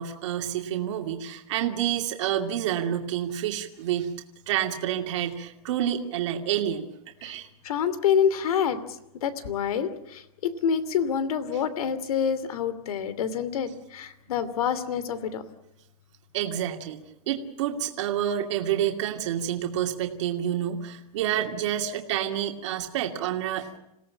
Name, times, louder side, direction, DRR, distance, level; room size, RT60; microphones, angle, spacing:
voice 1, 0.0-4.1 4.5-6.9 7.2-7.5 16.3-17.0 17.3-23.7, right 10 dB, 50° right, 3 dB, 2.6 m, -28 dB
voice 2, 7.6-8.8 9.2-15.4, left 7 dB, 70° left, 15 dB, 2.8 m, -27 dB
27.5 x 17.5 x 8.7 m, 0.86 s
supercardioid pair, 180°, 19 cm